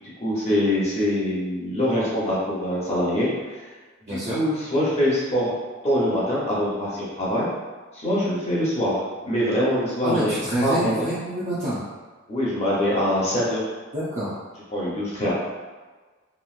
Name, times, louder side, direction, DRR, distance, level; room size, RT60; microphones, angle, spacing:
voice 1, 0.0-3.3 4.1-5.5 5.8-7.5 7.9-9.0 9.2-10.3 10.6-11.1 12.3-13.6 14.7-15.3, equal, 30° left, -7 dB, 0.9 m, -24 dB
voice 2, 4.1-4.4 10.0-11.8 13.9-14.3, right 1 dB, 35° right, -10 dB, 0.6 m, -27 dB
3.0 x 2.5 x 2.5 m, 1.3 s
head